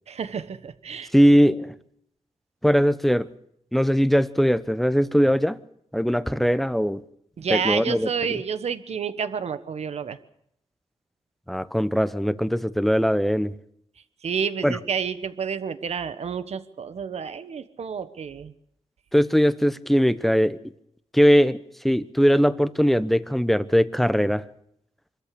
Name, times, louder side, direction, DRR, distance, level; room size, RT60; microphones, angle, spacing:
voice 1, 0.1-1.1 7.4-10.2 14.2-18.5, right 6 dB, 65° right, 1.3 m, -29 dB
voice 2, 1.1-1.7 2.6-3.3 3.7-5.6 5.9-7.0 7.5-8.4 11.5-13.5 14.6-14.8 19.1-20.6 21.1-21.6 21.8-24.4, equal, ahead, 1.0 m, -20 dB
25.5 x 13.5 x 8.7 m
cardioid pair, 95°, 12 cm